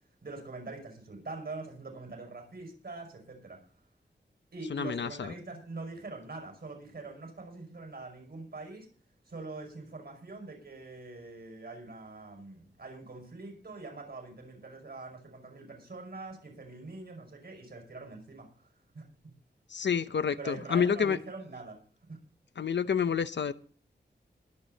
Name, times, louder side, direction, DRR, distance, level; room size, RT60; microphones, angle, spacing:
voice 1, 0.2-3.6 4.5-8.9 9.3-18.7 18.9-19.3 20.4-21.8 22.1-22.2, right 3 dB, 60° right, 4 dB, 5.6 m, -44 dB
voice 2, 4.7-5.3 19.7-21.2 22.6-23.5, left 7 dB, 80° left, 12 dB, 0.7 m, -29 dB
21.0 x 8.3 x 4.0 m, 0.42 s
wide cardioid pair, 110°, 18 cm